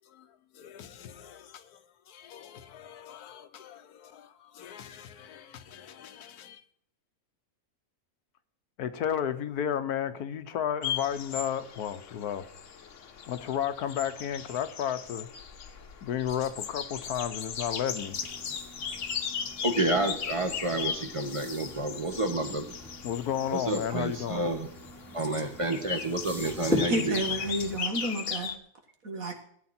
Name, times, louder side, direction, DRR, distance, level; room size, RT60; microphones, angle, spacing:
voice 1, 0.5-6.6 8.8-12.5 13.3-15.3 16.0-18.2 23.0-24.4, left 9 dB, 85° left, 1.4 m, -33 dB
sound 1, 10.8-28.6, left 7 dB, 55° left, 1.2 m, -38 dB
sound 2, 17.9-27.8, left 2 dB, ahead, 1.4 m, -40 dB
voice 2, 19.6-22.7 23.5-24.7 25.1-27.1, right 2 dB, 20° right, 1.3 m, -29 dB
voice 3, 26.9-28.5 29.0-29.3, right 1 dB, 65° right, 2.2 m, -31 dB
16.5 x 9.3 x 4.3 m
omnidirectional pair, 1.6 m